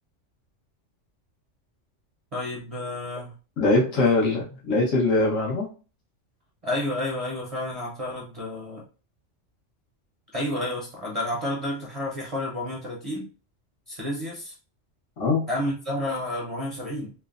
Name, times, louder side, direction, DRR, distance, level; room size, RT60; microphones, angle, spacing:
voice 1, 2.3-3.4 3.9-4.1 6.6-8.8 10.3-13.3 13.9-14.6 15.5-17.1, left 1 dB, 40° right, -2 dB, 0.6 m, -30 dB
voice 2, 3.6-5.7 15.2-15.5, left 2 dB, 75° left, -4 dB, 1.3 m, -22 dB
3.1 x 2.1 x 2.4 m, 0.36 s
omnidirectional pair, 1.3 m